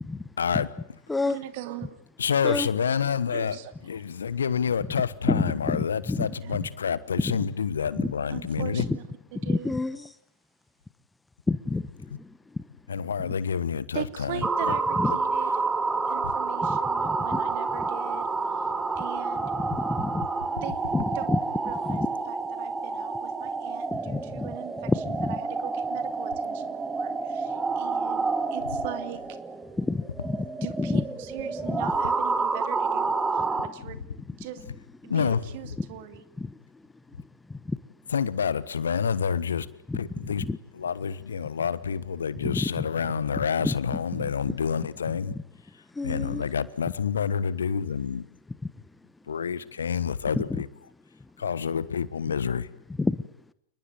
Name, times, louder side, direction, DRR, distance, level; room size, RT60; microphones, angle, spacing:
voice 1, 0.4-0.7 2.2-3.6 3.9-8.8 12.9-14.7 16.2-16.3 35.1-35.4 38.1-39.7 39.9-40.5 40.7-45.3 46.0-48.3 49.3-50.7 51.4-52.7, left 7 dB, 70° left, 17 dB, 1.3 m, -28 dB
voice 2, 1.2-1.9 3.3-4.0 6.3-6.5 8.3-9.0 9.3-9.8 13.9-15.5 16.0-18.7 19.0-19.5 20.6-20.8 21.1-29.4 30.6-34.0 34.4-34.7 35.0-36.2 43.2-43.3 46.4-46.5, right 13 dB, 50° right, 8 dB, 2.8 m, -41 dB
voice 3, 5.3-6.3 8.9-9.0 9.4-10.1 11.5-12.3 15.0-15.1 16.7-16.8 17.0-17.4 19.8-20.3 20.9-21.4 21.9-22.1 23.9-24.5 25.2-25.3 29.8-30.5 30.8-31.0 31.7-31.8 33.5-33.6 36.4-36.5 37.5-37.8 39.9-40.0 40.4-40.6 42.4-42.8 43.6-44.2 46.0-46.4 50.3-50.6 53.0-53.2, left 3 dB, 10° left, 16 dB, 1.1 m, -29 dB
sound 1, 14.4-33.7, right 4 dB, 15° right, 2.0 m, -29 dB
30.0 x 20.0 x 9.3 m, 0.75 s
figure-of-eight pair, 90°, 0 cm